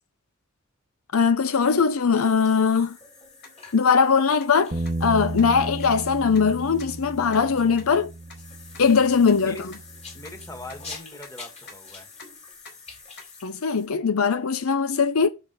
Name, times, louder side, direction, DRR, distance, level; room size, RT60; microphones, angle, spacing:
voice 1, 1.1-3.0 3.7-4.8 5.0-8.1 8.8-9.7 13.4-15.3, left 5 dB, 75° left, 0.6 m, -20 dB
sound 1, 2.1-13.9, left 4 dB, 30° left, 3.4 m, -47 dB
sound 2, 3.4-3.5 3.9-4.0 4.4-4.5 4.9-5.0 5.4-5.5 5.8-5.9 6.4-6.5 6.8-6.9 7.3-7.4 7.8-7.9 8.3-8.4 8.7-8.8 9.3-9.4 9.7-9.8 10.2-10.3 10.7-10.8 11.2-11.3 11.7-11.8 12.2-12.3 12.7-12.8 13.2-13.3, left 3 dB, 55° left, 4.4 m, -44 dB
Bass guitar, 4.7-11.0, right 2 dB, 30° right, 0.8 m, -35 dB
voice 2, 10.1-12.1, left 2 dB, 15° left, 2.1 m, -41 dB
8.1 x 7.3 x 4.8 m
head